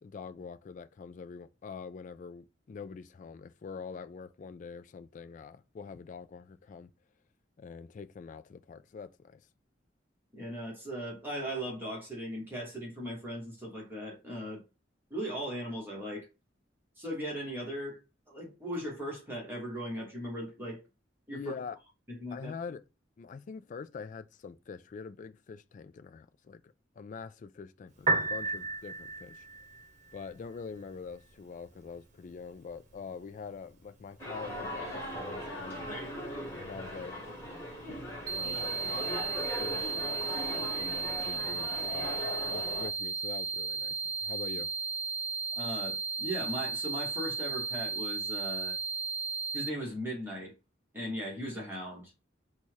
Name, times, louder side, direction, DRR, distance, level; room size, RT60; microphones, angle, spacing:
voice 1, 0.0-6.9 7.6-9.4 21.3-21.8 22.3-22.8 23.2-29.5 30.1-35.9 36.6-37.2 38.3-39.3 39.6-42.2 42.5-44.7, left 5 dB, 45° left, 0.3 m, -45 dB
voice 2, 10.3-14.6 15.1-16.3 17.0-18.0 18.3-20.8 21.3-21.5 22.2-22.5 45.6-48.8 49.5-50.5 50.9-52.1, equal, 10° right, 1.5 m, -38 dB
Piano, 27.9-40.9, right 3 dB, 40° right, 1.1 m, -40 dB
sound 1, 34.2-42.9, left 1 dB, 15° left, 1.9 m, -39 dB
sound 2, 38.3-49.7, right 4 dB, 75° right, 0.5 m, -35 dB
4.1 x 2.3 x 4.6 m
head